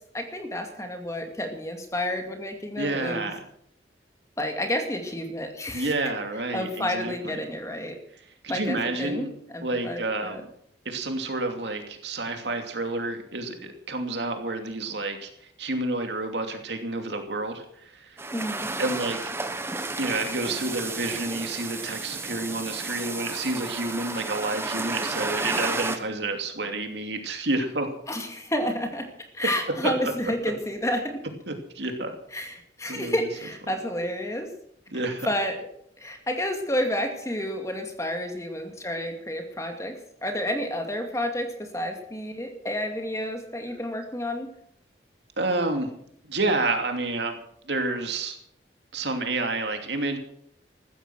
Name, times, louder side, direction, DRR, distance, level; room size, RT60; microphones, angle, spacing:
voice 1, 0.1-3.3 4.4-5.9 6.5-8.0 8.5-10.4 18.3-18.7 28.1-29.1 29.3-31.2 32.3-34.5 35.2-35.7 36.0-44.5, left 1 dB, 15° left, 5 dB, 2.4 m, -30 dB
voice 2, 2.8-3.4 5.7-7.4 8.4-9.3 9.6-10.4 10.8-15.3 15.6-18.2 18.8-19.3 20.0-27.9 29.8-29.9 31.5-32.1 32.9-33.3 34.9-35.3 45.4-45.9 46.2-47.4 47.7-48.4 48.9-50.2, right 2 dB, 70° right, 5 dB, 2.8 m, -29 dB
sound 1, 18.2-26.0, right 2 dB, 15° right, 1.2 m, -32 dB
15.0 x 13.5 x 6.3 m, 0.67 s
head